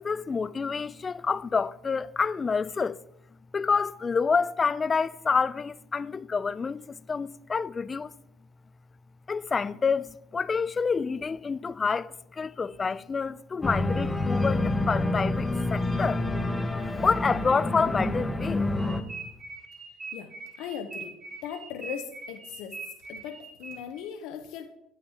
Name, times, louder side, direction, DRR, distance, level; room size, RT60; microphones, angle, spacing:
voice 1, 0.0-3.0 3.5-8.1 9.3-16.2 17.0-18.7, left 5 dB, 30° left, 0.3 m, -28 dB
Organ, 13.6-19.0, left 2 dB, 10° left, 0.8 m, -28 dB
sound 1, 18.8-24.1, right 4 dB, 35° right, 3.0 m, -42 dB
voice 2, 20.6-21.2 21.4-22.7 23.1-24.7, left 8 dB, 70° left, 0.7 m, -38 dB
8.9 x 8.6 x 2.9 m
supercardioid pair, 85°, 0 cm